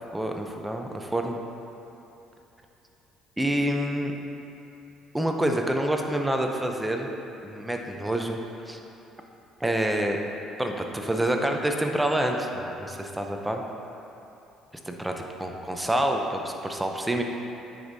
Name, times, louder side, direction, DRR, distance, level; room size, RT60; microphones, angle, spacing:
voice 1, 0.1-1.4 3.4-4.1 5.1-7.1 7.4-8.8 9.6-10.2 10.6-13.6 14.9-15.1 15.4-17.2, right 1 dB, 10° right, 3 dB, 0.6 m, -27 dB
9.2 x 5.1 x 2.7 m, 2.9 s
supercardioid pair, 80°, 0 cm